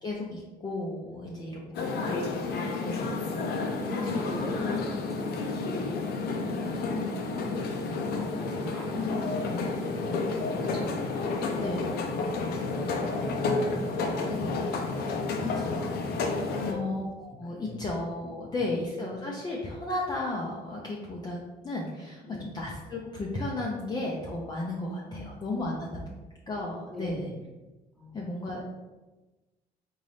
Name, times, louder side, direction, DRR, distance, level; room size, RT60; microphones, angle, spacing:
voice 1, 0.0-2.2 2.8-3.0 10.6-10.9 11.6-11.9 16.7-26.0 26.5-27.3 28.1-28.6, left 2 dB, 25° left, -3 dB, 0.5 m, -34 dB
voice 2, 1.0-2.2 2.9-3.4 3.7-11.0 11.4-11.9 12.3-14.4 14.8-16.8 17.3-17.8 18.6-18.7 22.2-22.5 25.1-25.6 26.9-27.4 27.9-28.3, left 2 dB, ahead, -4 dB, 1.0 m, -41 dB
sound 1, 1.7-16.7, left 3 dB, 70° left, 0.6 m, -30 dB
3.9 x 2.6 x 3.3 m, 1.2 s
cardioid pair, 110°, 17 cm